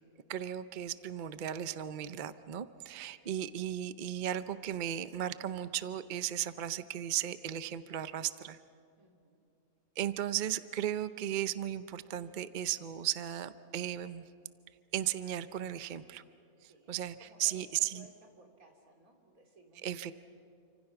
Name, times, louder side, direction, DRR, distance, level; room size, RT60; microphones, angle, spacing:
voice 1, 0.3-8.6 10.0-14.2 14.9-16.2 16.6-18.1 19.8-20.1, right 11 dB, 50° right, 13 dB, 0.6 m, -36 dB
voice 2, 9.0-9.4 16.6-20.1, right 1 dB, 65° right, 3 dB, 3.4 m, -60 dB
28.5 x 25.5 x 5.8 m, 2.6 s
omnidirectional pair, 1.6 m